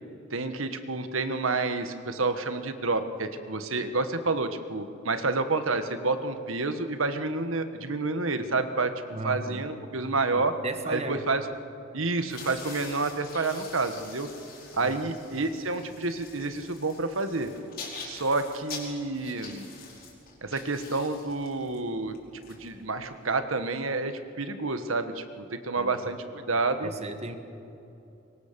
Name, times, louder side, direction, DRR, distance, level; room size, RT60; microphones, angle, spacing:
voice 1, 0.3-8.9 9.2-10.5 10.9-11.5 11.9-14.3 14.7-17.5 18.0-19.7 20.4-22.2 22.5-26.9, right 3 dB, 75° right, 9 dB, 1.5 m, -29 dB
voice 2, 9.1-9.7 10.3-11.3 14.8-15.2 25.8-26.0 26.8-27.4, right 2 dB, 30° right, 7 dB, 1.6 m, -36 dB
sound 1, 12.2-23.2, left 4 dB, 45° left, 5.2 m, -45 dB
24.0 x 23.5 x 6.9 m, 2.9 s
head